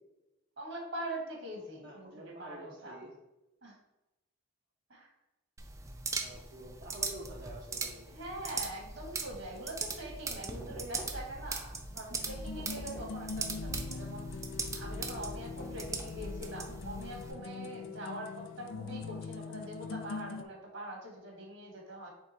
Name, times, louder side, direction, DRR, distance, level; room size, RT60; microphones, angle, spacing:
voice 1, 0.6-3.0 3.6-3.8 4.9-5.1 8.1-22.1, right 1 dB, 70° right, -1 dB, 1.6 m, -43 dB
voice 2, 1.8-3.1 6.2-8.1, right 1 dB, 45° right, -4 dB, 0.7 m, -48 dB
sound 1, 5.6-17.3, right 3 dB, 15° right, 0.4 m, -40 dB
Knock, 10.6-11.5 12.6-13.3 15.6-16.3, equal, 10° left, 0.7 m, -49 dB
sound 2, 12.2-20.4, left 5 dB, 70° left, 0.3 m, -43 dB
3.6 x 3.4 x 4.2 m, 1.0 s
head